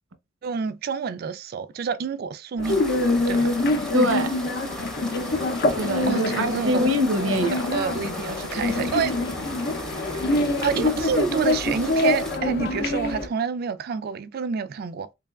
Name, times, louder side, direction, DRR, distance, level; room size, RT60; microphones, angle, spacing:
voice 1, 0.4-2.8 3.3-3.5 6.1-6.8 7.7-9.1 10.6-15.1, right 6 dB, 50° right, 0.3 m, -28 dB
sound 1, 2.6-13.3, left 2 dB, 55° left, 0.5 m, -25 dB
sound 2, 2.6-12.4, equal, 5° left, 0.6 m, -37 dB
voice 2, 3.9-4.4 5.8-7.6, equal, 90° right, 0.8 m, -23 dB
sound 3, 5.3-11.0, left 4 dB, 90° left, 0.7 m, -37 dB
3.7 x 3.3 x 2.3 m
head